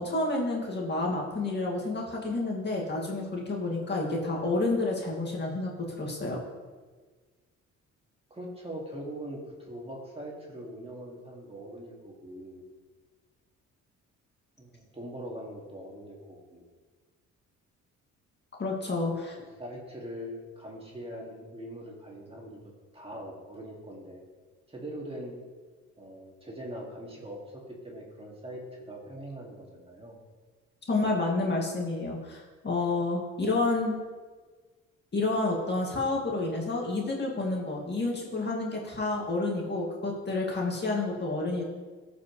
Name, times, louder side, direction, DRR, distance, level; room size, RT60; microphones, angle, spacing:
voice 1, 0.0-6.4 18.6-19.4 30.9-34.0 35.1-41.6, left 2 dB, 35° left, -2 dB, 2.1 m, -29 dB
voice 2, 8.3-12.6 14.6-16.6 19.4-22.6 22.9-24.2 24.7-25.4 26.0-30.2, equal, 20° right, -2 dB, 2.1 m, -42 dB
14.5 x 5.2 x 3.2 m, 1.4 s
cardioid pair, 90°, 30 cm